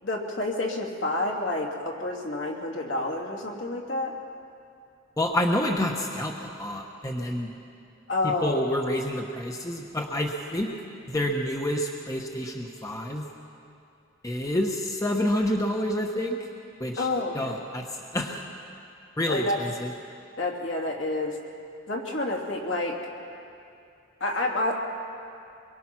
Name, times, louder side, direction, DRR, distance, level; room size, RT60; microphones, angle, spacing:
voice 1, 0.0-4.1 8.1-8.6 17.0-17.6 19.3-19.6 20.4-21.4 21.9-23.0 24.2-24.8, left 2 dB, 65° left, 0 dB, 2.9 m, -29 dB
voice 2, 5.2-7.5 8.2-10.7 11.1-13.3 14.2-16.5 16.8-17.1 17.3-18.4 19.2-19.9, left 1 dB, 15° left, 1 dB, 1.1 m, -28 dB
24.0 x 23.0 x 6.0 m, 2.6 s
head